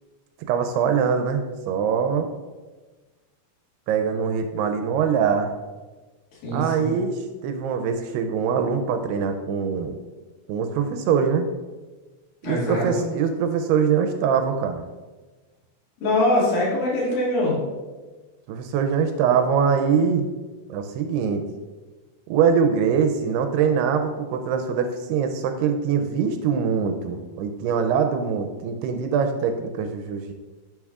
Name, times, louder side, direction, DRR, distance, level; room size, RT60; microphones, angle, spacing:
voice 1, 0.5-2.3 3.9-5.5 6.5-9.9 10.5-11.5 12.4-14.8 18.5-20.2 20.7-21.4 22.3-30.3, right 6 dB, 80° right, 6 dB, 2.5 m, -23 dB
voice 2, 6.4-6.9 12.4-13.0 16.0-17.6, left 1 dB, 60° left, -6 dB, 3.7 m, -23 dB
10.5 x 6.1 x 2.4 m, 1.3 s
omnidirectional pair, 4.8 m